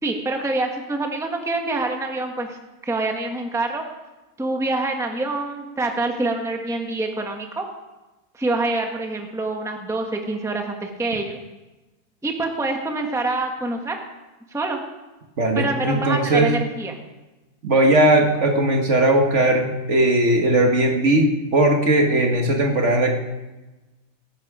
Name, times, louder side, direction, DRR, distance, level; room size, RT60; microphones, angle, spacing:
voice 1, 0.0-2.6 2.8-3.8 4.4-7.6 8.3-11.4 12.2-14.0 14.5-14.8 15.5-16.9, right 2 dB, ahead, 3 dB, 1.3 m, -26 dB
voice 2, 15.4-16.5 17.6-23.1, right 1 dB, 50° right, 2 dB, 1.8 m, -18 dB
19.0 x 11.0 x 4.9 m, 1.1 s
omnidirectional pair, 1.6 m